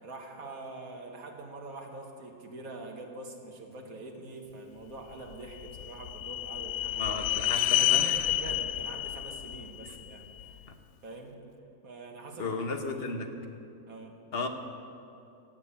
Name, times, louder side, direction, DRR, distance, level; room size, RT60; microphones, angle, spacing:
voice 1, 0.0-10.6 11.0-11.4 11.8-12.6 13.1-13.2 13.9-14.2, right 2 dB, 75° right, 2 dB, 2.0 m, -44 dB
sound 1, 5.3-10.5, left 13 dB, 85° left, 1.1 m, -30 dB
voice 2, 7.0-8.2 12.4-13.3 14.3-14.5, left 3 dB, 45° left, 5 dB, 1.2 m, -34 dB
17.0 x 7.5 x 8.5 m, 2.6 s
omnidirectional pair, 1.5 m